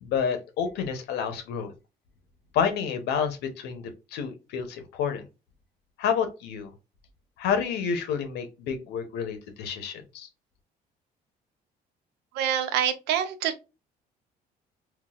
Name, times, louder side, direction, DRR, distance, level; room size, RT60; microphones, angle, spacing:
voice 1, 0.0-1.7 2.5-5.3 6.0-6.7 7.4-10.3, left 7 dB, 80° left, 0.7 m, -29 dB
voice 2, 12.3-13.6, right 9 dB, 90° right, 0.5 m, -26 dB
3.9 x 2.3 x 2.3 m
cardioid pair, 110°, 17 cm